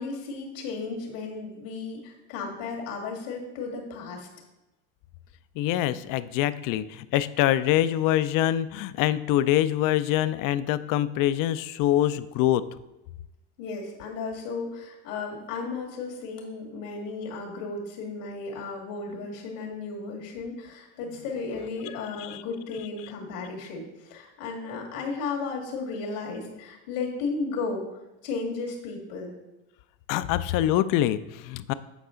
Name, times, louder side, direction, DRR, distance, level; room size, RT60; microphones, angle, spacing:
voice 1, 0.0-4.3 13.6-27.8 28.2-29.4, left 4 dB, 85° left, 0 dB, 2.0 m, -34 dB
voice 2, 5.6-12.6 22.2-22.4 30.1-31.7, left 13 dB, 60° left, 15 dB, 0.5 m, -24 dB
8.1 x 4.8 x 3.7 m, 0.98 s
supercardioid pair, 105°, 37 cm